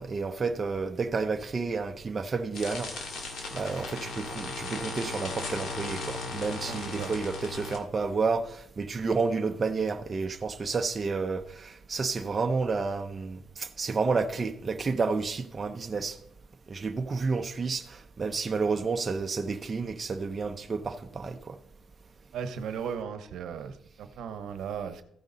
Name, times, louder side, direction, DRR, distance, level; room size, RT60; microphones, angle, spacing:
voice 1, 0.0-2.9 3.5-16.2 16.7-21.6, right 4 dB, 35° right, 0.7 m, -30 dB
sound 1, 2.5-7.8, left 3 dB, 65° left, 2.0 m, -37 dB
voice 2, 6.6-7.1 22.3-25.0, right 7 dB, 75° right, 0.9 m, -36 dB
15.0 x 5.2 x 4.0 m
cardioid pair, 90°, 0 cm